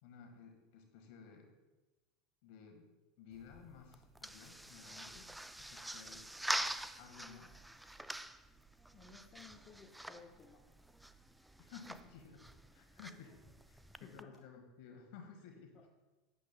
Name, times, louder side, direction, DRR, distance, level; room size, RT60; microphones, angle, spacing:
voice 1, 0.0-1.5 2.4-2.8 3.2-5.3 5.6-6.3 6.6-7.6 11.6-12.4 12.7-13.4 13.7-15.9, left 6 dB, 55° left, 3 dB, 1.5 m, -55 dB
sound 1, 3.3-14.2, right 1 dB, 5° right, 0.4 m, -45 dB
voice 2, 8.9-10.6 14.0-14.3, left 5 dB, 30° left, 0 dB, 1.0 m, -57 dB
12.0 x 8.2 x 2.2 m, 1.1 s
figure-of-eight pair, 80°, 0 cm